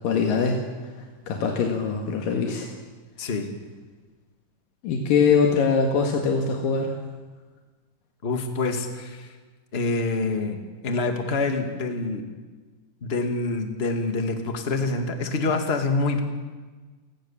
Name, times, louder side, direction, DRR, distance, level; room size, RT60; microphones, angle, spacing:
voice 1, 0.0-2.7 4.8-7.0, left 5 dB, 85° left, 2 dB, 3.6 m, -23 dB
voice 2, 3.2-3.5 8.2-9.3 9.7-12.2 13.0-16.2, left 3 dB, 20° left, 5 dB, 2.0 m, -26 dB
29.0 x 20.5 x 7.4 m, 1.3 s
omnidirectional pair, 3.8 m